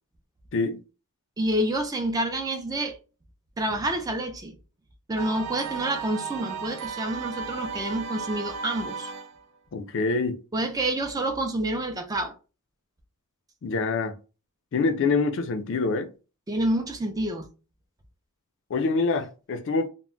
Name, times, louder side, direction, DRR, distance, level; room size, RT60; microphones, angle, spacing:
voice 1, 1.4-3.0 3.6-4.6 5.1-9.1 10.5-12.3 16.5-17.5, right 1 dB, 15° right, 0.4 m, -28 dB
sound 1, 5.2-9.4, right 5 dB, 90° right, 0.4 m, -35 dB
voice 2, 9.7-10.4 13.6-14.1 14.7-16.1 18.7-19.9, left 4 dB, 60° left, 0.4 m, -25 dB
2.2 x 2.0 x 3.7 m
head